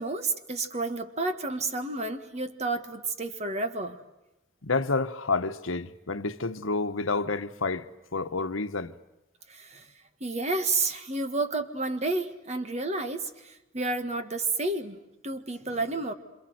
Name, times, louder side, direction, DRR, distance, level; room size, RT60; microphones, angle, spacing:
voice 1, 0.0-4.0 9.5-9.8 10.2-16.1, right 3 dB, 35° right, 1.7 m, -31 dB
voice 2, 4.6-7.9 8.1-8.9, left 3 dB, 75° left, 1.2 m, -29 dB
27.0 x 27.0 x 7.9 m
head